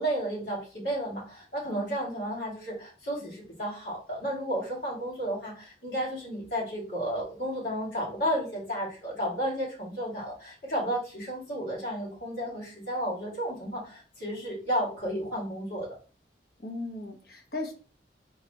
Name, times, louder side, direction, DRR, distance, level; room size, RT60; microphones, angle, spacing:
voice 1, 0.0-15.9, equal, 75° left, -6 dB, 2.6 m, -32 dB
voice 2, 16.6-17.7, left 2 dB, 55° left, 2 dB, 1.1 m, -37 dB
4.1 x 4.0 x 3.0 m, 0.37 s
head